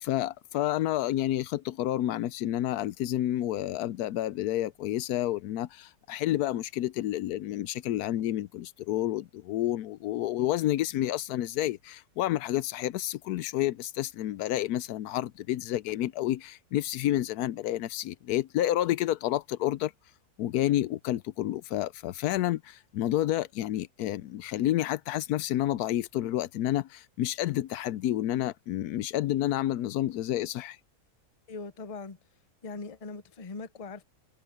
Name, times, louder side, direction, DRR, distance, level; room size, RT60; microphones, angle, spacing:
voice 1, 0.0-19.9 20.4-30.8, left 13 dB, 80° left, 1.1 m, -29 dB
voice 2, 31.5-32.2 32.6-34.0, left 4 dB, 35° left, 0.7 m, -40 dB
omnidirectional pair, 1.6 m